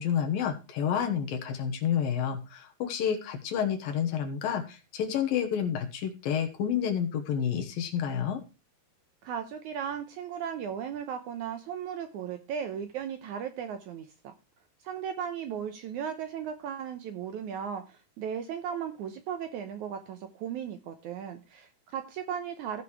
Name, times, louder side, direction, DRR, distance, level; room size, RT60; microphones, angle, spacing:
voice 1, 0.0-8.4, left 8 dB, 70° left, 5 dB, 2.8 m, -29 dB
voice 2, 9.2-14.3 14.8-22.8, right 8 dB, 80° right, 8 dB, 1.7 m, -36 dB
15.5 x 5.2 x 4.8 m, 0.30 s
omnidirectional pair, 4.5 m